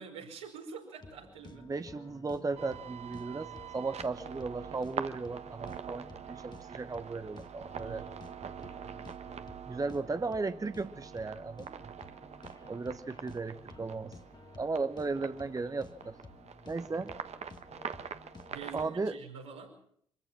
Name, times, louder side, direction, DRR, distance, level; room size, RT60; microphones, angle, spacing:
voice 1, 0.0-1.7 7.8-8.4 18.5-19.8, right 6 dB, 75° right, -1 dB, 5.1 m, -47 dB
sound 1, 1.0-19.2, left 3 dB, 25° left, 1.7 m, -53 dB
voice 2, 1.6-8.1 9.7-11.8 12.7-14.2 14.6-16.2 16.7-17.1 18.7-19.1, right 3 dB, 20° right, 11 dB, 1.0 m, -36 dB
sound 2, 2.6-18.9, right 7 dB, 45° right, 1.4 m, -45 dB
25.0 x 15.5 x 7.4 m, 0.65 s
figure-of-eight pair, 45°, 16 cm